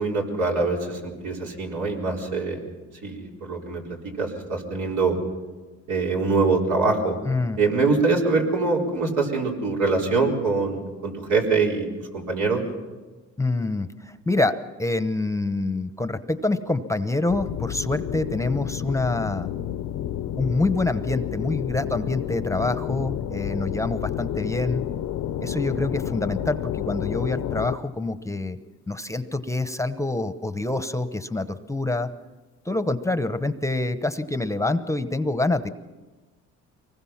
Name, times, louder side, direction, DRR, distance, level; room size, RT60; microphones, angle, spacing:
voice 1, 0.0-2.7 3.0-5.2 5.9-7.2 7.6-12.6, right 3 dB, 80° right, -1 dB, 4.2 m, -24 dB
voice 2, 7.3-7.6 13.4-19.5 20.4-24.8 25.4-28.6 28.9-32.1 32.6-35.7, left 2 dB, 10° left, 11 dB, 0.9 m, -26 dB
sound 1, 17.3-27.8, left 11 dB, 80° left, 0.8 m, -30 dB
24.5 x 20.0 x 5.9 m, 1.3 s
cardioid pair, 90°, 30 cm